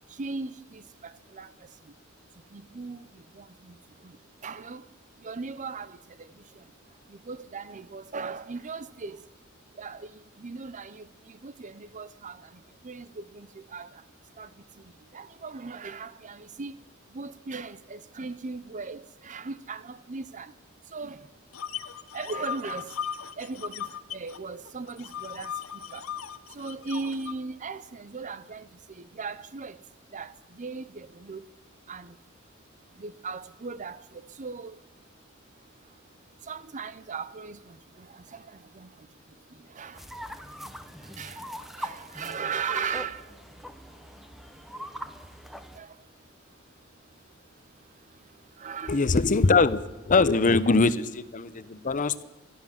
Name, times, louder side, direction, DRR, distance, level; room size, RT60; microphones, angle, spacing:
voice 1, 0.2-1.5 2.5-3.0 3.3-3.8 4.4-4.8 5.2-6.3 7.3-9.2 9.8-12.4 12.8-13.9 14.4-14.5 15.1-16.8 17.1-20.5 20.9-21.2 22.1-22.9 23.4-23.8 24.1-25.5 25.9-26.0 26.5-28.7 29.0-29.8 30.1-31.4 31.9-32.1 33.0-34.0 34.4-34.7 36.5-38.4 38.7-38.9 39.8-40.0 41.2-41.4 41.8-43.3 45.8-45.9 48.6-49.0 50.7-50.8, right 4 dB, 35° right, 0.6 m, -37 dB
sound 1, 21.5-24.4 24.7-27.3, left 8 dB, 70° left, 0.9 m, -37 dB
sound 2, 40.0-45.8, equal, ahead, 1.0 m, -41 dB
voice 2, 48.9-52.2, left 3 dB, 40° left, 0.7 m, -22 dB
30.0 x 12.0 x 7.3 m
head